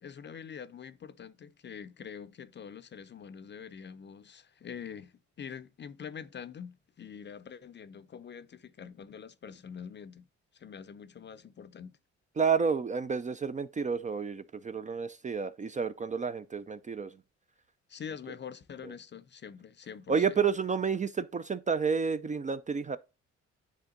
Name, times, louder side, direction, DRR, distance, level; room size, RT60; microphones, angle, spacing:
voice 1, 0.0-10.3 10.5-12.0 17.9-20.4, left 7 dB, 35° left, 0.6 m, -45 dB
voice 2, 12.4-17.1 20.1-23.0, right 6 dB, 25° right, 0.4 m, -30 dB
9.8 x 3.5 x 3.7 m
cardioid pair, 90°, 30 cm